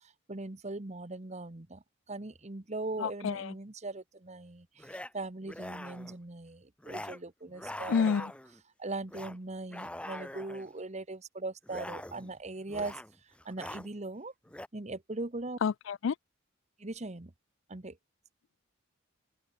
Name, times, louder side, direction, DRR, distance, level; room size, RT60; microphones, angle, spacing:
voice 1, 0.0-8.3 8.8-14.3 14.7-15.6 16.8-17.3 17.7-18.0, right 2 dB, 35° right, 1.1 m, -40 dB
sound 1, 2.8-3.0 4.8-5.1 5.4-6.2 6.8-7.2 7.5-8.6 9.1-9.4 9.7-10.7 11.6-12.4 12.7-13.1 13.4-13.9 14.5-14.7, left 1 dB, 5° left, 1.0 m, -43 dB
voice 2, 3.0-3.5 7.9-8.3 15.6-16.1, left 6 dB, 70° left, 0.4 m, -29 dB
open air
head